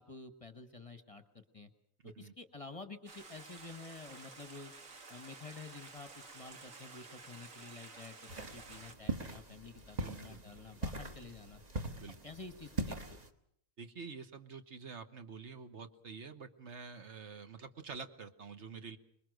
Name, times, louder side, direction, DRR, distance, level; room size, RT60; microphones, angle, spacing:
voice 1, 0.0-1.7 2.0-4.7 5.1-11.6 12.2-13.2, left 3 dB, 25° left, 9 dB, 1.2 m, -50 dB
Stream, 3.1-8.9, right 4 dB, 75° right, 2.3 m, -52 dB
sound 1, 8.3-13.3, right 2 dB, 30° right, 1.4 m, -41 dB
voice 2, 10.0-10.6 11.9-12.2 13.8-19.0, right 5 dB, 60° right, 9 dB, 1.5 m, -48 dB
26.0 x 21.5 x 6.5 m, 0.68 s
omnidirectional pair, 1.4 m